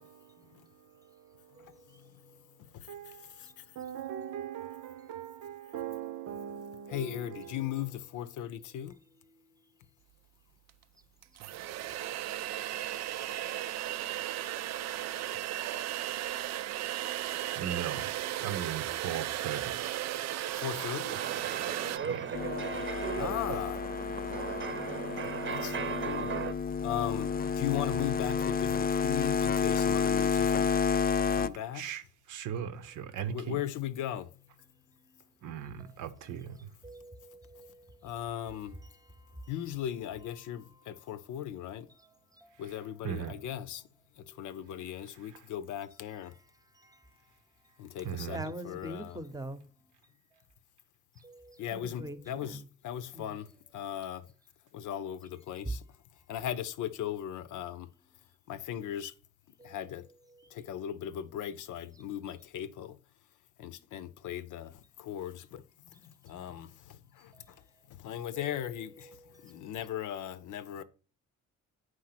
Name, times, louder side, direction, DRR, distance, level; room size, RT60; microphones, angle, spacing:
voice 1, 0.0-0.5 0.8-1.7 2.9-3.4 3.8-7.6 17.6-18.1 18.4-19.7 22.0-22.3 31.7-32.0 32.3-33.6 35.4-36.7 43.0-43.3 48.0-48.4, right 9 dB, 80° right, 0.8 m, -39 dB
voice 2, 1.6-2.3 2.7-3.6 6.9-9.0 20.6-21.2 23.2-23.9 25.5-26.3 26.8-30.8 31.2-31.9 33.3-34.3 38.0-38.8 39.5-41.9 42.6-43.8 44.2-46.4 47.8-48.4 48.6-49.2 51.6-54.3 54.7-55.8 56.3-57.9 58.5-59.1 59.6-60.1 60.5-63.0 63.6-70.8, left 11 dB, 80° left, 0.7 m, -38 dB
sound 1, 10.7-10.8 11.2-22.0, right 13 dB, 60° right, 0.4 m, -35 dB
sound 2, 21.1-26.5, right 7 dB, 40° right, 0.8 m, -37 dB
sound 3, 22.3-31.5, left 5 dB, 30° left, 0.4 m, -30 dB
voice 3, 36.8-37.8 41.6-41.7 42.4-42.5 43.3-43.4 44.2-44.4 48.3-49.6 51.2-52.6 53.1-53.3 59.6-59.8 68.3-68.5, right 1 dB, 10° right, 0.8 m, -45 dB
9.3 x 3.2 x 5.8 m
cardioid pair, 90°, 30 cm